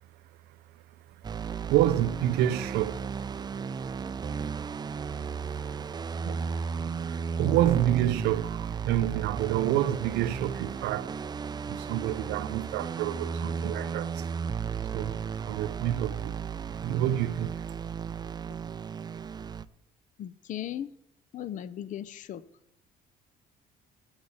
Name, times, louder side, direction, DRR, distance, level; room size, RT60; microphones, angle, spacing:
sound 1, 1.2-19.7, right 6 dB, 25° right, 0.4 m, -34 dB
voice 1, 1.7-3.1 4.3-4.5 6.1-11.2 11.7-14.3 14.9-16.4 16.8-17.6, right 13 dB, 85° right, 0.5 m, -28 dB
voice 2, 20.2-20.9 21.3-22.4, left 11 dB, 50° left, 0.6 m, -37 dB
8.3 x 8.2 x 8.7 m
cardioid pair, 110°, 17 cm